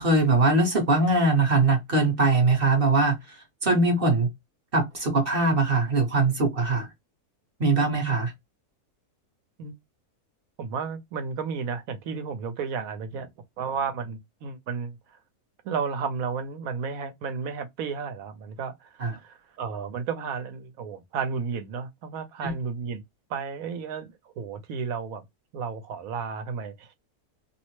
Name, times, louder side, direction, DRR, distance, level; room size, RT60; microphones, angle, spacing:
voice 1, 0.0-3.2 3.6-4.3 4.7-6.9 7.6-8.3 19.0-19.1 22.4-22.5, right 3 dB, 40° right, 1.0 m, -21 dB
voice 2, 10.6-13.3 13.6-15.0 15.6-23.0 23.3-25.2 25.5-26.9, right 6 dB, 65° right, 1.1 m, -33 dB
2.8 x 2.0 x 3.0 m
omnidirectional pair, 1.7 m